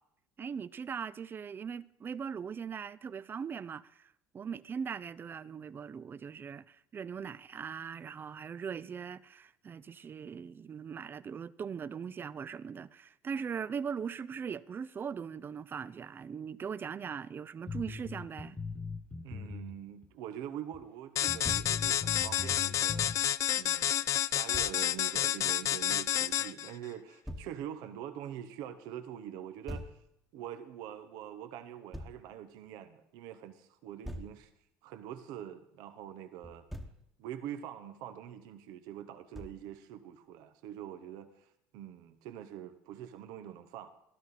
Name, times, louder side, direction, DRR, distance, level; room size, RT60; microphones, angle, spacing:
voice 1, 0.4-18.6, right 6 dB, 30° right, 0.4 m, -40 dB
sound 1, 17.7-19.8 20.0-20.1 20.7-20.8 21.3-23.2, left 4 dB, 20° left, 1.3 m, -40 dB
voice 2, 19.2-23.1 23.5-23.9 24.3-29.9 30.3-34.5 34.8-36.6 37.2-41.5 41.7-43.9, right 10 dB, 75° right, 0.8 m, -44 dB
sound 2, 21.2-26.7, left 11 dB, 50° left, 0.3 m, -30 dB
Thump thud, 21.4-21.7 24.5-24.7 27.3-27.5 29.7-30.0 31.9-32.2 34.0-34.4 36.4-37.0 39.3-39.7, equal, 5° right, 1.1 m, -42 dB
13.0 x 12.5 x 4.1 m
supercardioid pair, 90°, 7 cm